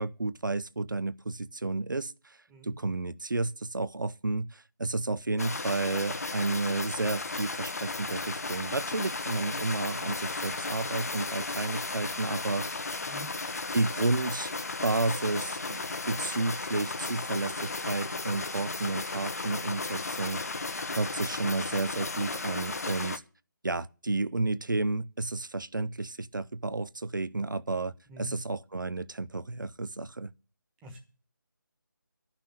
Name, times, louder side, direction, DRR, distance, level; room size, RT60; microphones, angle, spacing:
voice 1, 0.0-2.4 2.6-12.8 13.7-20.6 20.9-23.2 23.6-30.3, right 2 dB, 65° right, 0.7 m, -32 dB
voice 2, 2.5-2.7 13.1-13.3 28.1-28.3 30.8-31.0, equal, 5° right, 1.3 m, -45 dB
sound 1, 5.4-23.2, left 3 dB, 45° left, 0.9 m, -35 dB
11.5 x 5.9 x 8.7 m
figure-of-eight pair, 160°, 11 cm